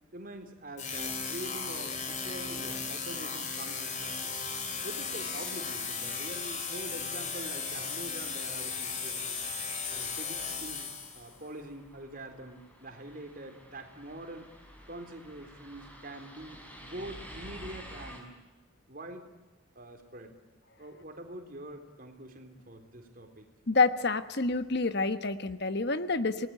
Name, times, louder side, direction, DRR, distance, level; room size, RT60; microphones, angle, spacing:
voice 1, 0.1-4.1 4.8-9.4 9.9-14.5 14.9-18.4 18.9-19.3 19.8-20.3 20.8-23.4, right 1 dB, 40° right, 5 dB, 3.8 m, -45 dB
sound 1, 0.8-11.3, left 5 dB, 35° left, 4.1 m, -36 dB
sound 2, 8.3-18.2, equal, 10° left, 5.5 m, -51 dB
voice 2, 23.7-26.5, left 3 dB, 50° left, 11 dB, 1.2 m, -28 dB
29.0 x 19.5 x 9.0 m, 1.2 s
head